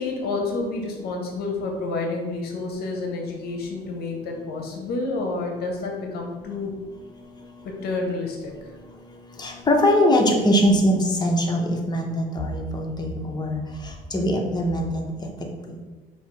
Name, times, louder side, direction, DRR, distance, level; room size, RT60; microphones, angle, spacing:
voice 1, 0.0-6.7 7.8-8.5, left 3 dB, 70° left, 1 dB, 0.7 m, -29 dB
voice 2, 9.4-13.6 14.1-15.3 15.7-15.8, equal, 25° left, 1 dB, 0.7 m, -22 dB
4.7 x 2.7 x 3.1 m, 1.3 s
cardioid pair, 110°, 17 cm